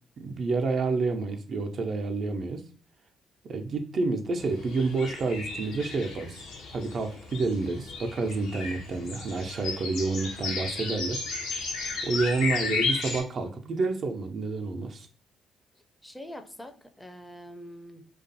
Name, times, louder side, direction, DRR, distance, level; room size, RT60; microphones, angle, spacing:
voice 1, 0.2-2.6 3.4-6.4 6.7-11.2 12.0-15.1, right 3 dB, 55° right, 5 dB, 0.4 m, -29 dB
sound 1, 4.4-13.2, left 4 dB, 75° left, 0.5 m, -34 dB
voice 2, 16.0-18.1, equal, 10° left, 7 dB, 0.4 m, -44 dB
2.4 x 2.2 x 2.7 m, 0.42 s
hypercardioid pair, 45°, 0 cm